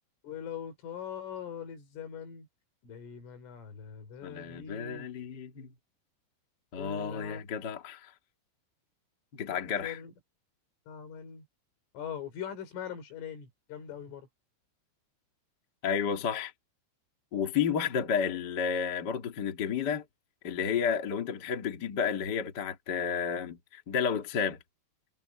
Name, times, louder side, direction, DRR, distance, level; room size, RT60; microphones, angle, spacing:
voice 1, 0.2-2.5 2.8-5.1 6.8-7.4 9.5-10.1 10.9-11.5 11.9-14.3, left 8 dB, 80° left, 7.6 m, -42 dB
voice 2, 4.2-5.7 6.7-8.1 9.3-10.0 15.8-16.5 17.3-20.0 20.4-24.6, left 7 dB, 50° left, 1.3 m, -31 dB
omnidirectional pair, 5.6 m